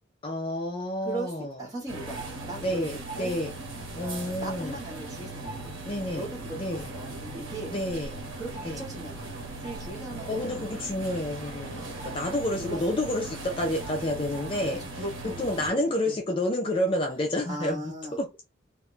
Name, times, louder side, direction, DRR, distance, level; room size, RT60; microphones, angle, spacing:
voice 1, 0.2-1.5 2.6-3.5 4.0-4.8 5.8-6.3 6.6-6.9 7.7-8.2 8.6-8.8 10.3-14.8 15.4-18.3, left 1 dB, 25° left, 0.3 m, -29 dB
voice 2, 1.0-2.8 3.1-3.3 4.0-5.8 6.2-6.7 6.9-7.7 8.4-10.7 11.7-12.2 12.6-13.0 14.8-15.5 15.7-16.2 17.4-18.2, right 2 dB, 20° right, 0.9 m, -39 dB
sound 1, 1.9-15.7, right 2 dB, 80° right, 0.9 m, -39 dB
2.2 x 2.1 x 3.7 m
head